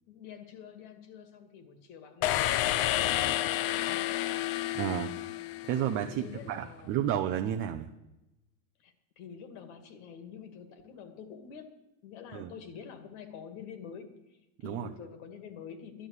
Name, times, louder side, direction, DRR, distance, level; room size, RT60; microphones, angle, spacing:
voice 1, 0.1-3.2 3.6-4.5 6.0-7.1 8.8-11.7 12.0-16.1, left 7 dB, 60° left, 8 dB, 2.3 m, -47 dB
sound 1, 2.2-6.1, left 14 dB, 40° left, 0.5 m, -30 dB
voice 2, 4.7-5.1 5.6-7.9 12.3-12.5 14.6-14.9, right 10 dB, 30° right, 5 dB, 0.6 m, -31 dB
11.5 x 11.0 x 8.3 m, 0.94 s
supercardioid pair, 160°, 39 cm